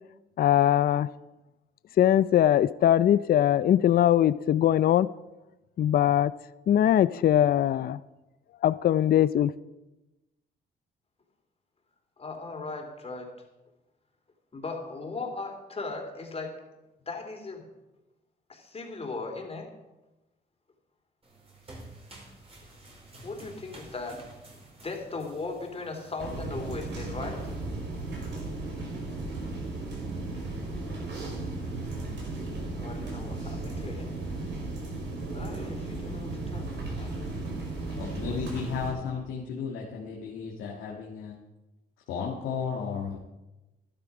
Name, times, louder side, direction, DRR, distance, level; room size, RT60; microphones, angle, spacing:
voice 1, 0.4-1.1 2.0-5.1 5.8-6.3 6.7-8.0 8.6-9.5, left 11 dB, 50° left, 17 dB, 0.4 m, -21 dB
voice 2, 12.2-13.3 14.5-16.6 17.1-17.6 18.5-19.7 23.2-24.2 24.8-27.4 32.7-34.1 35.3-37.4 38.2-38.4, left 3 dB, 30° left, 2 dB, 3.2 m, -38 dB
sound 1, 21.2-27.7, right 2 dB, 30° right, 4.9 m, -51 dB
sound 2, 26.2-38.9, right 2 dB, 65° right, 5.1 m, -35 dB
voice 3, 37.9-41.3 42.1-43.2, left 6 dB, 85° left, -1 dB, 1.7 m, -34 dB
12.5 x 12.0 x 4.9 m, 1.0 s
cardioid pair, 90°, 20 cm